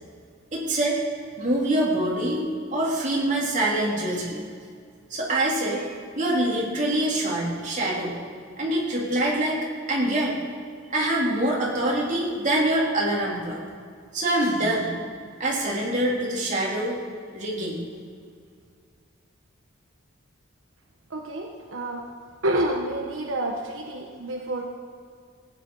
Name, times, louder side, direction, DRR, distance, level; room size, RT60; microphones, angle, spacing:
voice 1, 0.5-1.0 1.4-4.4 5.1-5.9 6.1-8.2 8.6-10.4 10.9-13.6 14.1-14.9 15.4-17.0 17.3-17.8, right 1 dB, 40° right, -4 dB, 3.2 m, -25 dB
voice 2, 21.1-22.0 22.4-24.6, right 1 dB, 75° right, 0 dB, 1.2 m, -28 dB
16.5 x 9.6 x 5.5 m, 2.2 s
head